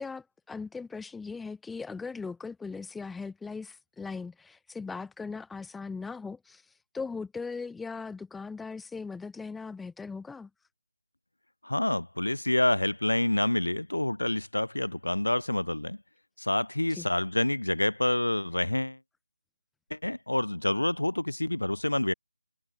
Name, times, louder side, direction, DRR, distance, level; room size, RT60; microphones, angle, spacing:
voice 1, 0.0-10.5 16.9-17.1, left 4 dB, 5° left, 6.6 m, -39 dB
voice 2, 11.6-16.0 16.4-19.0 19.9-22.1, left 1 dB, 80° left, 5.6 m, -27 dB
figure-of-eight pair, 160°, 0 cm